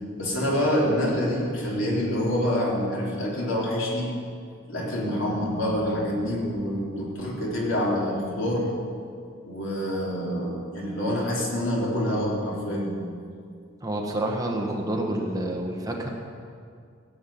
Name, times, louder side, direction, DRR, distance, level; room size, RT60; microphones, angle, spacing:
voice 1, 0.2-4.1 4.7-8.7 9.4-13.0, equal, 70° left, -4 dB, 3.6 m, -26 dB
voice 2, 13.8-16.1, right 1 dB, 20° right, 1 dB, 1.5 m, -28 dB
16.0 x 7.9 x 8.6 m, 2.3 s
head